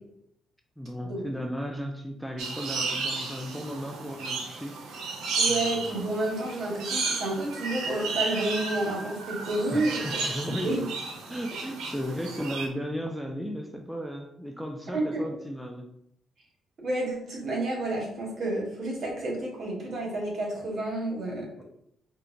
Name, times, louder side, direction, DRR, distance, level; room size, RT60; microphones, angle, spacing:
voice 1, 0.8-4.8 5.5-5.6 9.7-10.8 11.3-15.9, equal, ahead, 3 dB, 0.4 m, -35 dB
sound 1, 2.4-12.7, right 4 dB, 85° right, 0.5 m, -33 dB
voice 2, 5.4-10.2 10.6-10.8 14.9-15.2 16.8-21.6, right 2 dB, 60° right, -1 dB, 1.2 m, -30 dB
4.4 x 2.2 x 2.6 m, 0.74 s
cardioid pair, 90°, 0 cm